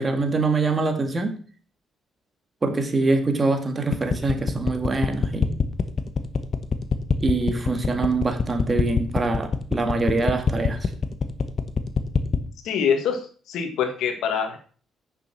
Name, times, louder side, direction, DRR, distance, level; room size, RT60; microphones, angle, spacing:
voice 1, 0.0-1.4 2.6-5.5 7.2-10.9, right 3 dB, 30° right, 6 dB, 2.0 m, -24 dB
sound 1, 3.9-12.5, left 5 dB, 45° left, 1.2 m, -23 dB
voice 2, 12.6-14.6, left 7 dB, 85° left, 7 dB, 1.9 m, -25 dB
9.1 x 6.9 x 6.0 m, 0.41 s
cardioid pair, 90°, 0 cm